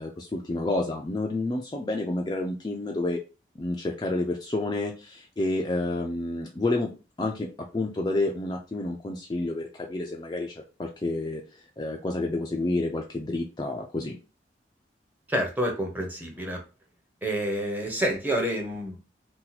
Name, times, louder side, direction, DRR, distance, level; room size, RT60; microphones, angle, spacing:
voice 1, 0.0-3.2 3.6-6.9 7.2-14.2, left 2 dB, 25° left, 1 dB, 0.4 m, -29 dB
voice 2, 15.3-16.6 17.2-19.0, equal, 10° right, 1 dB, 0.7 m, -28 dB
2.8 x 2.3 x 4.0 m, 0.31 s
head